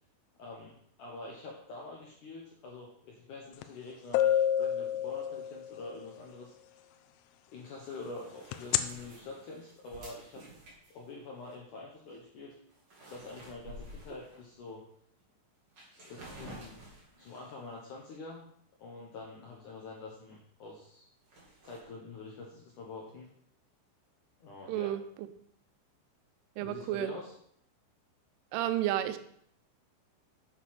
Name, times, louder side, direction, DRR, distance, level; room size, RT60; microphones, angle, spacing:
voice 1, 0.4-6.5 7.5-10.4 10.9-12.5 13.1-14.8 16.0-16.8 17.2-18.5 18.8-21.1 21.6-23.3 24.4-24.9 26.6-27.3, left 3 dB, 65° left, -2 dB, 2.0 m, -46 dB
sound 1, 3.6-3.7 4.1-5.9 8.5-8.8, left 10 dB, 80° left, 2.9 m, -27 dB
sound 2, 7.6-11.5 12.0-12.2 12.5-14.7 15.2-15.3 15.7-17.6 21.2-21.8, right 1 dB, 30° right, 3.0 m, -51 dB
voice 2, 24.7-25.0 26.6-27.1 28.5-29.2, right 13 dB, 90° right, 11 dB, 3.3 m, -31 dB
8.1 x 6.8 x 5.9 m, 0.67 s
omnidirectional pair, 5.5 m